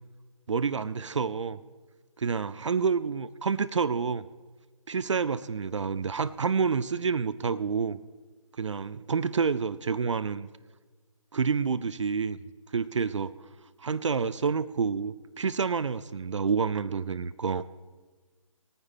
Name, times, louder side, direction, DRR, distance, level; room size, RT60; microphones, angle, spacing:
voice 1, 0.5-1.6 2.2-4.2 4.9-8.0 8.6-10.5 11.3-12.4 12.7-13.3 13.8-17.6, right 5 dB, 60° right, 15 dB, 0.5 m, -28 dB
20.0 x 9.5 x 4.1 m, 1.4 s
figure-of-eight pair, 145°, 17 cm